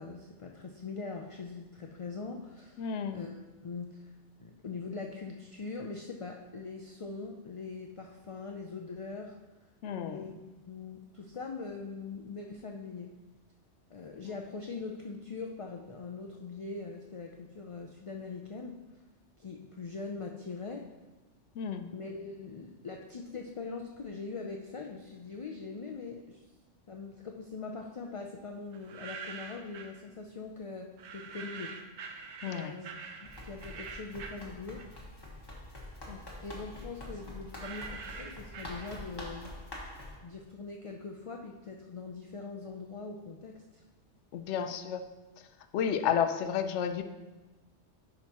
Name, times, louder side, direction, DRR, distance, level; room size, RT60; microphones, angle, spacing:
voice 1, 0.0-4.1 4.4-9.4 10.0-10.3 10.7-13.1 13.9-18.8 19.4-20.9 21.9-26.4 26.9-31.8 32.5-32.9 33.2-34.8 36.4-39.5 40.2-43.8 44.5-44.7, left 4 dB, 55° left, 1 dB, 0.3 m, -42 dB
voice 2, 2.8-3.3 9.8-10.2 21.6-22.0 32.4-32.8 36.1-36.2 44.3-45.0 45.7-47.0, left 8 dB, 80° left, 9 dB, 0.9 m, -32 dB
sound 1, 28.7-30.0 31.0-35.2 35.6-39.3, right 5 dB, 80° right, 1.0 m, -45 dB
Run, 33.2-40.2, left 1 dB, 20° left, 1.2 m, -45 dB
10.5 x 5.3 x 2.9 m, 1.2 s
omnidirectional pair, 1.2 m